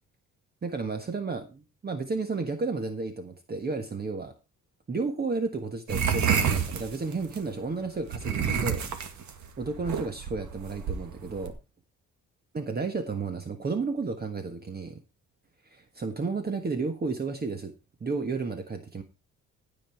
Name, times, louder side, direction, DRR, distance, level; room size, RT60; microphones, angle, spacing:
voice 1, 0.6-4.3 4.9-8.9 9.6-11.5 12.5-15.0 15.6-17.7 18.0-19.0, right 4 dB, 30° right, 7 dB, 1.4 m, -32 dB
sound 1, 5.9-7.4 8.1-11.5, right 7 dB, 70° right, 2.0 m, -28 dB
16.0 x 5.5 x 4.5 m, 0.29 s
cardioid pair, 90°, 30 cm